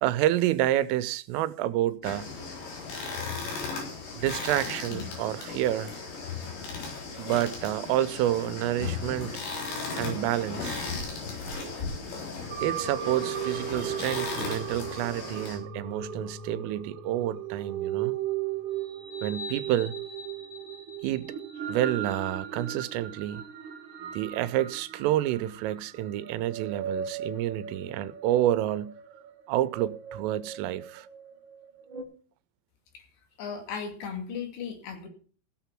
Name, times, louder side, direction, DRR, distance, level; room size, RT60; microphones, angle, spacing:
voice 1, 0.0-2.3 4.2-6.0 7.2-9.3 10.0-10.8 12.6-18.2 19.2-19.9 21.0-21.3 21.7-23.5 24.1-29.0 29.5-31.1, right 13 dB, 90° right, 3.3 m, -29 dB
sound 1, 2.0-15.6, left 4 dB, 85° left, 6.7 m, -36 dB
sound 2, 12.5-32.0, right 8 dB, 50° right, 2.7 m, -37 dB
voice 2, 33.4-35.1, left 6 dB, 65° left, 4.4 m, -36 dB
16.0 x 7.0 x 5.8 m
omnidirectional pair, 5.7 m